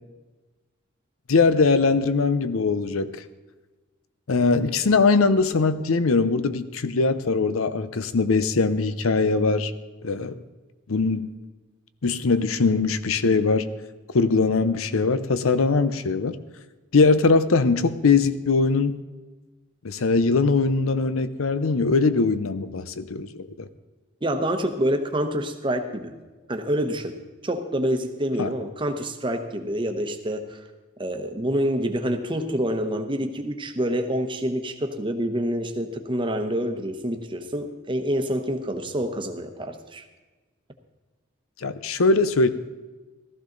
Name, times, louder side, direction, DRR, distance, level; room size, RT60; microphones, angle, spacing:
voice 1, 1.3-3.2 4.3-9.7 10.0-10.4 10.9-11.3 12.0-13.7 14.1-16.4 16.9-18.9 19.8-23.7 28.4-28.5 41.6-42.5, left 4 dB, 90° left, 13 dB, 0.7 m, -21 dB
voice 2, 24.2-26.2 26.5-27.1 27.4-30.6 31.0-40.0, equal, 25° right, 6 dB, 1.0 m, -27 dB
15.0 x 14.0 x 3.9 m, 1.2 s
head